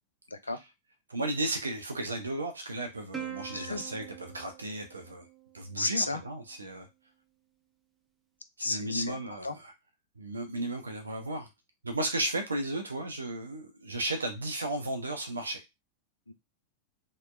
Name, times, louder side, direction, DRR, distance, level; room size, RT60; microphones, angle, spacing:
voice 1, 1.1-5.2 5.5-6.9 8.6-9.5 10.2-11.5 11.8-15.6, right 1 dB, 75° right, 0.4 m, -34 dB
Plucked string instrument, 3.1-5.9, right 8 dB, 15° right, 0.6 m, -43 dB
voice 2, 3.5-3.8 5.8-6.2 8.6-9.6 16.3-16.4, left 3 dB, 80° left, 0.3 m, -33 dB
2.8 x 2.0 x 2.3 m
figure-of-eight pair, 90°, 0 cm